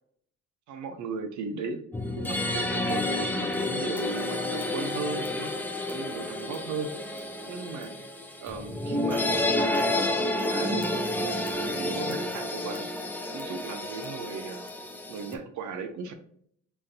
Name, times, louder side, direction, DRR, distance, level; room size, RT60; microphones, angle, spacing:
voice 1, 0.7-5.5 5.9-6.9 7.5-7.9 8.4-11.0 11.5-12.9 13.3-14.7 15.1-16.1, right 4 dB, 80° right, 8 dB, 0.6 m, -37 dB
sound 1, 1.9-15.4, left 1 dB, 5° left, 0.4 m, -30 dB
5.7 x 2.5 x 2.6 m, 0.65 s
cardioid pair, 120°, 29 cm